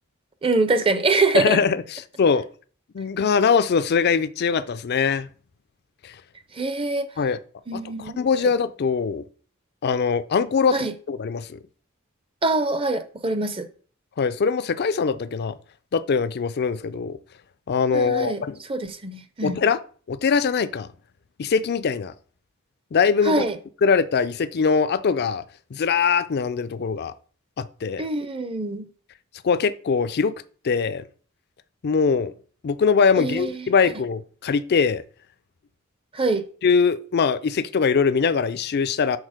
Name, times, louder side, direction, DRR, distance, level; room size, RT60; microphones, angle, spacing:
voice 1, 0.4-1.6 6.6-7.1 7.7-8.2 10.7-10.9 12.4-13.6 17.9-18.4 18.7-19.6 23.3-23.6 28.0-28.8 33.2-33.7 36.1-36.4, right 3 dB, 25° right, 0.6 m, -24 dB
voice 2, 1.3-2.5 2.9-5.3 6.0-6.1 7.2-7.4 7.7-9.2 9.8-11.6 14.2-15.6 15.9-17.2 17.7-18.6 19.4-19.8 20.1-20.9 21.4-22.1 22.9-23.4 23.8-25.4 25.7-27.1 27.6-28.1 29.4-30.3 30.6-31.0 31.8-32.3 32.6-35.0 36.6-39.2, left 5 dB, 50° left, 0.4 m, -22 dB
6.4 x 4.0 x 5.0 m
head